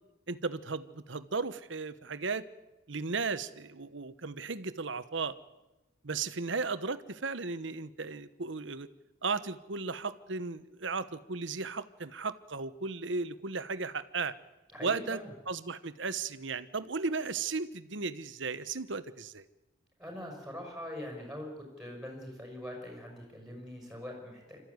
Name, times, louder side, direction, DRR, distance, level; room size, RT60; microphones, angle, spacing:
voice 1, 0.3-2.4 2.9-5.3 6.0-8.9 9.2-14.3 14.8-15.2 15.5-19.4, right 4 dB, 60° right, 13 dB, 1.0 m, -35 dB
voice 2, 14.7-15.3 20.0-24.6, left 1 dB, 5° right, 1 dB, 5.7 m, -43 dB
26.5 x 14.0 x 9.5 m, 1.0 s
head